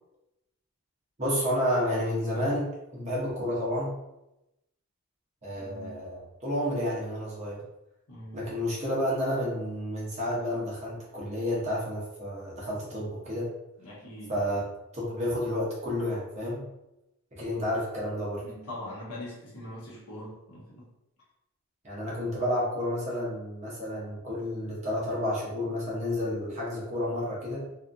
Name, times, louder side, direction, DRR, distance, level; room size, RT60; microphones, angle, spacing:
voice 1, 1.2-4.0 5.4-7.6 8.3-13.5 14.3-14.6 14.9-16.7 17.3-18.4 21.8-27.7, left 1 dB, 30° right, -6 dB, 0.8 m, -30 dB
voice 2, 5.5-6.0 8.1-8.4 13.8-14.3 18.4-20.9, left 1 dB, 80° left, -6 dB, 1.1 m, -42 dB
2.7 x 2.4 x 2.5 m, 0.91 s
head